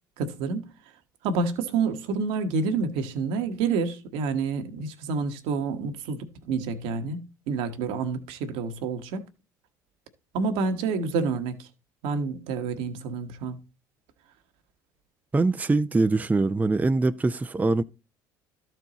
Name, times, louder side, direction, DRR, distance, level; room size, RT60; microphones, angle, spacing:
voice 1, 0.2-0.7 1.2-9.2 10.3-11.7 12.0-13.6, right 4 dB, 65° right, 1.2 m, -28 dB
voice 2, 15.3-17.8, right 3 dB, 15° right, 0.5 m, -23 dB
13.0 x 4.5 x 4.0 m
hypercardioid pair, 65°, 10 cm